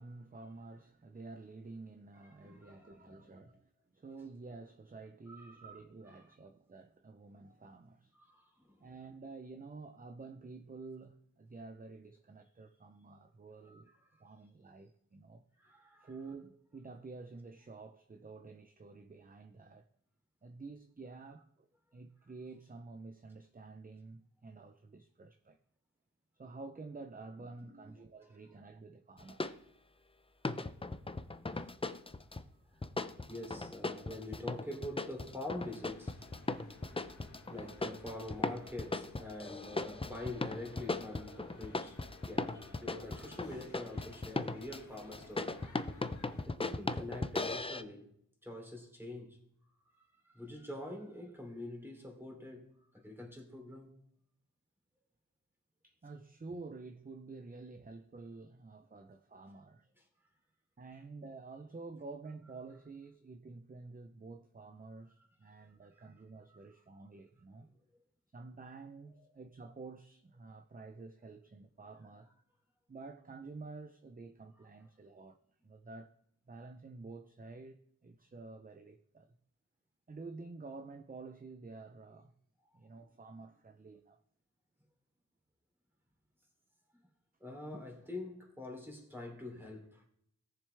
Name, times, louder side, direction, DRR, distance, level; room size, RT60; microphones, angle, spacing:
voice 1, 0.0-8.1 8.8-13.9 14.2-15.4 16.0-19.9 20.4-25.6 26.4-29.6 32.7-32.8 55.8-59.9 60.8-67.7 68.3-72.3 72.9-75.4 75.6-76.1 76.5-79.4 80.1-82.3 82.7-84.2, right 3 dB, 25° right, 0.6 m, -50 dB
voice 2, 2.3-3.5 5.3-5.7 6.1-6.2 8.1-8.9 13.6-13.8 14.1-14.2 15.6-16.1 27.7-27.9 31.5-31.7 33.2-36.5 37.5-45.6 46.4-48.1 48.4-49.4 50.0-53.9 60.0-60.1 66.0-66.1 66.5-66.6 87.4-90.1, left 1 dB, 5° right, 3.2 m, -46 dB
sound 1, 29.2-29.5 30.4-32.4 32.8-47.8, left 2 dB, 15° left, 0.5 m, -38 dB
sound 2, 35.6-46.5, left 3 dB, 60° left, 1.8 m, -57 dB
17.5 x 6.7 x 3.4 m
wide cardioid pair, 75°, 33 cm